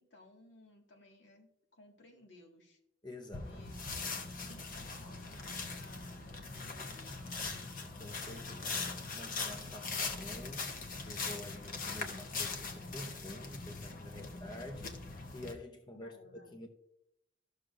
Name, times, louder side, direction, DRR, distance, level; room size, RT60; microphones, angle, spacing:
voice 1, 0.0-2.8 3.4-3.8 4.5-7.5 15.9-16.6, left 1 dB, 75° left, 1.9 m, -59 dB
voice 2, 3.0-3.7 8.0-16.1 16.5-16.7, left 1 dB, 25° left, 0.7 m, -48 dB
sound 1, 3.3-15.5, left 4 dB, 45° left, 1.0 m, -41 dB
13.5 x 6.6 x 2.5 m
head